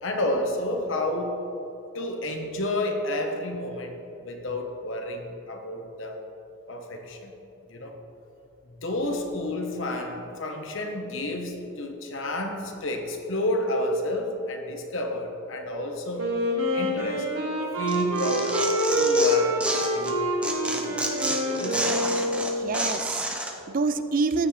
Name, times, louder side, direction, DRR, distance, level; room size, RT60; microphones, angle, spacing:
voice 1, 0.0-1.4 1.9-3.9 4.2-6.2 6.7-7.3 7.7-8.0 8.8-16.3 16.7-17.2 17.8-18.7 19.0-19.7 19.9-20.2 20.7-21.0 21.4-22.0, left 1 dB, 60° left, 3 dB, 1.2 m, -30 dB
Wind instrument woodwind instrument, 16.2-22.8, equal, 70° right, 2.0 m, -26 dB
Tearing, 17.9-20.1 20.4-23.5, right 1 dB, 5° right, 0.7 m, -30 dB
voice 2, 22.5-24.5, right 4 dB, 40° right, 11 dB, 0.4 m, -27 dB
14.5 x 9.8 x 3.3 m, 3.0 s
head